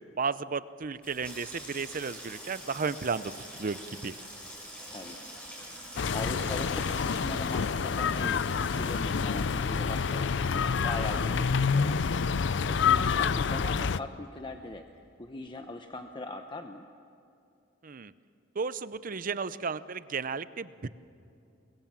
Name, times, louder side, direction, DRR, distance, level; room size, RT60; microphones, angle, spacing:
voice 1, 0.2-4.1 17.8-18.1 18.5-20.9, right 5 dB, 45° right, 15 dB, 0.7 m, -33 dB
Water tap faucet / Sink (filling or washing), 0.9-13.7 14.0-14.7 14.9-15.3, equal, 5° left, 6.0 m, -46 dB
voice 2, 5.6-11.9 12.2-14.8 15.2-16.8, left 2 dB, 25° left, 5 dB, 0.9 m, -40 dB
sound 1, 6.0-14.0, left 5 dB, 70° left, 0.5 m, -28 dB
25.5 x 22.5 x 7.5 m, 2.6 s
head